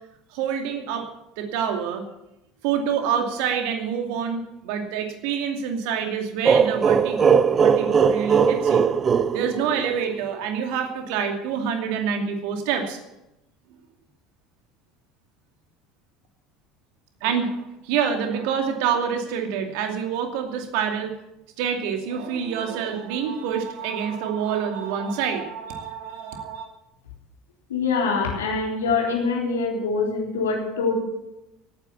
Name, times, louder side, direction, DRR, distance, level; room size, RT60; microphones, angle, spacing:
voice 1, 0.3-1.1 1.4-2.0 2.6-13.0 17.2-21.1 21.6-26.7, right 7 dB, 65° right, 5 dB, 2.5 m, -27 dB
sound 1, 6.4-10.2, right 6 dB, 30° right, 0.7 m, -19 dB
voice 2, 27.7-31.0, left 4 dB, 80° left, 0 dB, 3.6 m, -24 dB
17.5 x 9.5 x 7.2 m, 0.90 s
hypercardioid pair, 70°, 0 cm